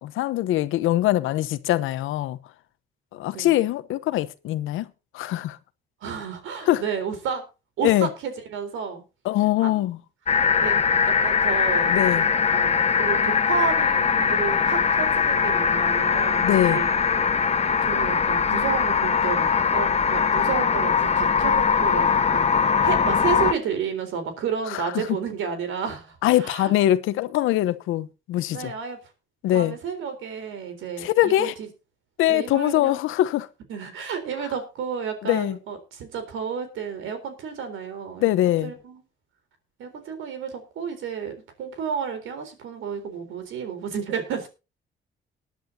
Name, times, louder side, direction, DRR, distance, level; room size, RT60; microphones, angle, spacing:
voice 1, 0.0-2.4 3.1-4.9 5.1-5.6 6.6-6.8 7.8-8.1 9.2-10.0 11.9-12.2 16.4-16.8 24.7-25.0 26.2-28.7 29.4-29.8 31.0-31.5 32.2-33.5 35.2-35.6 38.2-38.7, left 14 dB, 90° left, 0.9 m, -22 dB
voice 2, 6.0-7.4 7.8-9.0 9.6-9.9 10.5-10.8 11.1-16.9 17.8-26.7 28.5-29.0 29.5-31.7 32.3-32.9 33.7-38.3 38.6-39.0 39.8-44.5, right 6 dB, 85° right, 3.9 m, -31 dB
sound 1, 10.3-23.5, left 6 dB, 35° left, 0.9 m, -21 dB
20.0 x 10.5 x 2.8 m
cardioid pair, 90°, 20 cm